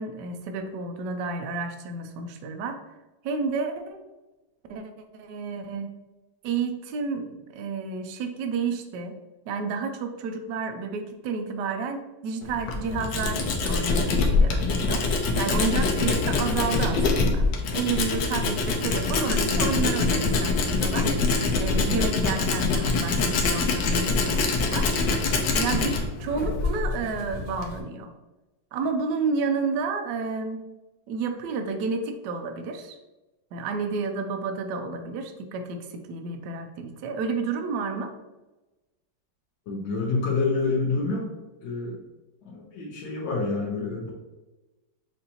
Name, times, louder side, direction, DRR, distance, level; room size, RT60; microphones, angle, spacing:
voice 1, 0.0-2.8 3.2-4.0 4.7-6.0 6.4-9.2 9.5-15.1 15.4-17.5 17.7-21.1 21.6-24.9 25.5-28.1 28.7-30.6 31.1-33.0 33.5-38.1, right 4 dB, 75° right, 6 dB, 1.1 m, -31 dB
Tools, 12.4-27.8, left 3 dB, 75° left, 1.3 m, -24 dB
voice 2, 39.7-41.3 41.6-42.0 42.4-44.1, left 3 dB, 90° left, -4 dB, 1.7 m, -27 dB
6.5 x 2.6 x 2.8 m, 1.1 s
omnidirectional pair, 2.1 m